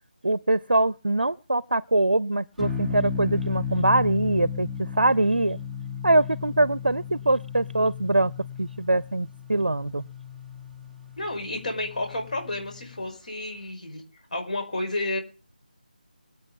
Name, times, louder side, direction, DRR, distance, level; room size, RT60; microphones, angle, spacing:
voice 1, 0.2-5.6 6.0-8.3 8.6-10.0, right 2 dB, 80° right, 0.6 m, -23 dB
sound 1, 2.6-13.1, left 6 dB, ahead, 0.7 m, -34 dB
voice 2, 11.2-14.0 14.3-15.2, left 2 dB, 55° left, 5.6 m, -31 dB
22.0 x 8.9 x 5.4 m
figure-of-eight pair, 160°, 5 cm